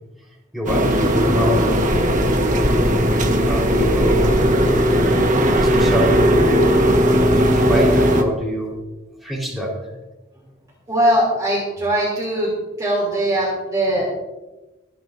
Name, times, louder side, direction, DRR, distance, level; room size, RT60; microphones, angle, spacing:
voice 1, 0.5-2.1 3.5-4.5 5.5-6.7 7.4-8.8 9.2-9.9, equal, ahead, -4 dB, 4.1 m, -25 dB
sound 1, 0.7-8.2, equal, 40° right, 1.4 m, -17 dB
voice 2, 10.9-12.5 12.8-14.1, right 1 dB, 15° right, -4 dB, 2.9 m, -20 dB
24.5 x 10.0 x 2.6 m, 1.1 s
head